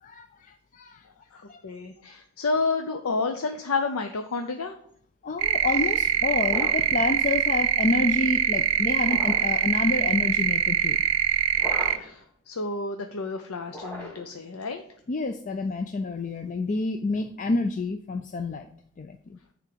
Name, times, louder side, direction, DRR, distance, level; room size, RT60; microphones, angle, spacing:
voice 1, 0.0-1.0 1.5-1.6 5.2-11.0 15.1-18.7 19.0-19.4, left 3 dB, 35° left, 6 dB, 0.4 m, -28 dB
voice 2, 1.3-4.8 12.0-14.8, left 3 dB, 80° left, 6 dB, 0.7 m, -30 dB
sound 1, 5.4-12.0, right 10 dB, 65° right, 0.4 m, -24 dB
sound 2, 6.4-7.0 9.0-9.6 11.6-12.2 13.7-14.4, equal, 5° left, 2.1 m, -37 dB
9.2 x 3.6 x 6.7 m, 0.64 s
head